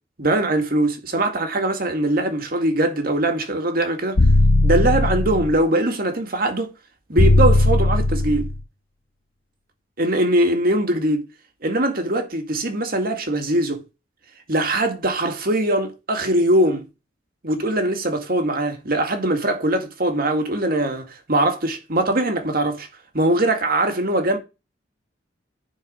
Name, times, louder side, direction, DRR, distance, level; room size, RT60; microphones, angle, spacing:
voice 1, 0.2-4.2 4.6-6.7 7.1-8.5 10.0-11.2 11.6-13.8 14.5-16.9 17.4-22.9 23.1-24.4, right 1 dB, 55° right, 2.1 m, -21 dB
sound 1, 4.2-5.6 7.2-8.6, left 2 dB, 90° left, 0.9 m, -17 dB
10.5 x 4.7 x 5.2 m
head